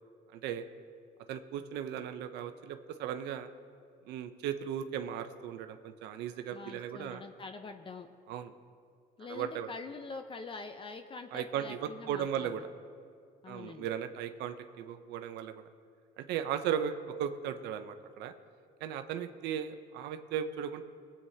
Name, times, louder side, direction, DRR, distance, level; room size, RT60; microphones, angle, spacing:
voice 1, 0.3-0.6 1.3-3.5 4.1-7.2 8.3-8.5 9.3-9.7 11.3-12.6 13.5-15.6 16.2-18.3 18.8-20.8, right 9 dB, 85° right, 8 dB, 0.6 m, -36 dB
voice 2, 6.5-8.1 9.2-12.5 13.4-13.9, left 4 dB, 30° left, 7 dB, 0.6 m, -45 dB
22.5 x 8.6 x 2.8 m, 2.3 s
cardioid pair, 110°, 17 cm